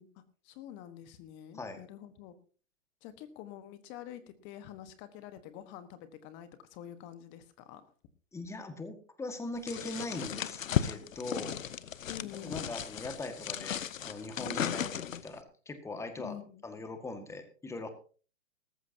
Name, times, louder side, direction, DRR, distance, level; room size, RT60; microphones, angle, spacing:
voice 1, 0.0-2.3 3.0-7.9 12.1-12.7 16.2-16.6, left 11 dB, 30° left, 12 dB, 1.3 m, -47 dB
voice 2, 8.3-11.6 12.3-16.4 16.6-17.9, left 2 dB, 5° left, 8 dB, 1.7 m, -41 dB
sound 1, 9.7-15.4, left 9 dB, 75° left, 0.9 m, -35 dB
18.0 x 14.5 x 2.8 m, 0.38 s
hypercardioid pair, 130°, 39 cm